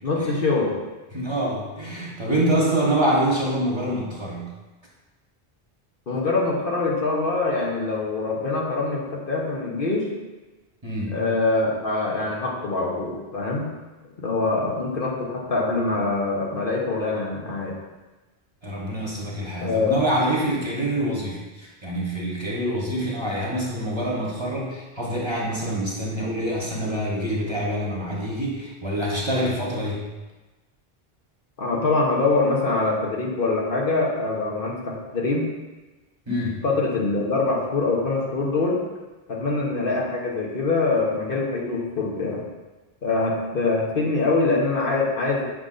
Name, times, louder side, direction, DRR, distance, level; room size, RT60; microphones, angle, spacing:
voice 1, 0.0-0.7 6.1-10.1 11.1-13.7 14.2-17.7 19.6-19.9 31.6-35.4 36.6-38.8 39.3-42.4 43.0-45.5, left 3 dB, 60° left, -2 dB, 1.1 m, -24 dB
voice 2, 1.1-4.5 10.8-11.2 18.6-30.0 36.3-36.6, right 1 dB, 30° right, -4 dB, 1.1 m, -26 dB
6.4 x 6.2 x 2.5 m, 1.2 s
omnidirectional pair, 1.1 m